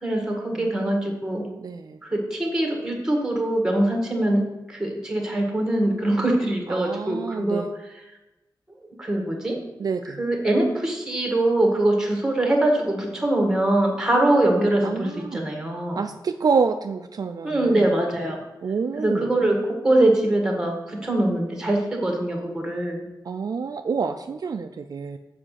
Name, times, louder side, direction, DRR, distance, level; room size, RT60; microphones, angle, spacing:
voice 1, 0.0-1.5 2.0-7.6 9.0-9.6 10.2-16.0 17.4-18.4 19.0-23.0, right 1 dB, 10° right, 2 dB, 1.6 m, -23 dB
voice 2, 0.5-1.1 1.6-2.0 6.7-7.7 9.8-10.2 14.8-15.4 16.0-17.9 18.6-19.3 23.2-25.2, right 5 dB, 55° right, 7 dB, 0.4 m, -28 dB
7.5 x 5.0 x 6.4 m, 1.0 s
wide cardioid pair, 155°, 8 cm